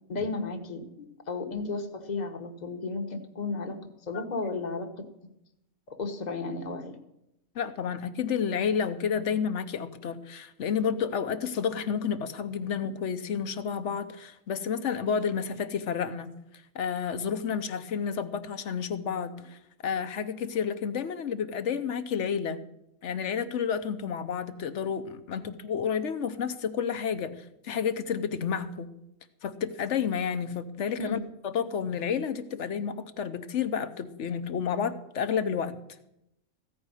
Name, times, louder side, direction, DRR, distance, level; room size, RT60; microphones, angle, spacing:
voice 1, 0.1-3.8 4.1-5.1 5.9-7.0 25.4-25.5 31.0-31.2, left 3 dB, 30° left, 4 dB, 1.3 m, -34 dB
voice 2, 7.5-16.3 16.7-22.6 23.0-28.9 29.4-35.8, left 7 dB, 60° left, 11 dB, 1.1 m, -30 dB
15.5 x 5.2 x 9.7 m, 0.84 s
omnidirectional pair, 1.5 m